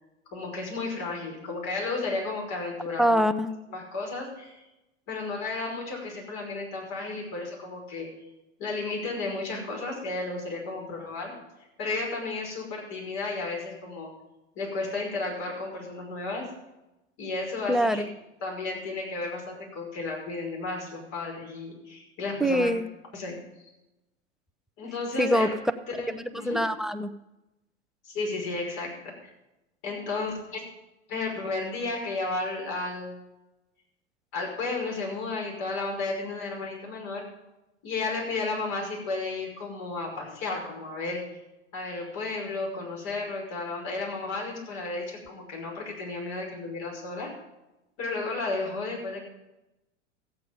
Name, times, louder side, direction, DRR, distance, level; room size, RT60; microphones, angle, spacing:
voice 1, 0.3-3.2 3.7-4.6 5.1-8.1 8.6-11.3 11.8-14.1 14.6-16.5 17.2-18.0 18.4-22.7 23.1-23.4 24.8-25.5 25.9-26.6 28.0-28.9 29.2-29.3 29.8-30.6 31.1-33.2 34.3-37.2 37.8-41.2 41.7-47.3 48.0-49.2, left 3 dB, 50° left, -1 dB, 5.7 m, -33 dB
voice 2, 3.0-3.5 17.7-18.1 22.4-22.9 25.2-25.5 26.1-27.1, equal, ahead, 8 dB, 0.5 m, -24 dB
14.5 x 8.7 x 5.4 m, 0.95 s
hypercardioid pair, 100°, 36 cm